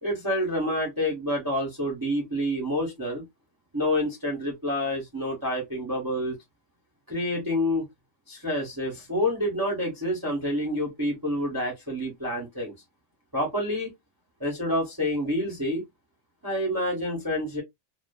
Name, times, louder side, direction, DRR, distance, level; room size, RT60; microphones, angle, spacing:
voice 1, 0.0-3.2 3.7-6.3 7.1-7.9 8.3-12.7 13.3-13.9 14.4-15.8 16.4-17.6, left 1 dB, 20° right, 0.6 m, -28 dB
2.4 x 2.3 x 2.2 m
omnidirectional pair, 1.4 m